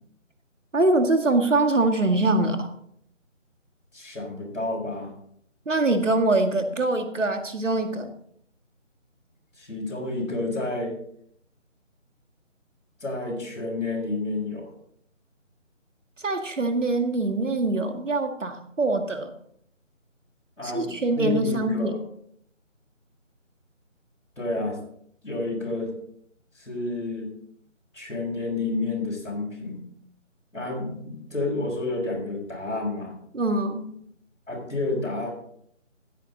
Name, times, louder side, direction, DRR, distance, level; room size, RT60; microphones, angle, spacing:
voice 1, 0.7-2.7 5.7-8.1 16.2-19.3 20.6-21.9 33.3-33.9, right 2 dB, 75° right, 6 dB, 2.1 m, -23 dB
voice 2, 3.9-5.1 9.6-11.0 13.0-14.7 20.6-22.0 24.4-24.8 25.2-25.9 26.5-27.3 27.9-29.8 30.5-33.1 34.5-35.3, left 2 dB, 85° left, -6 dB, 5.4 m, -30 dB
15.5 x 9.1 x 3.9 m, 0.68 s
figure-of-eight pair, 160°, 38 cm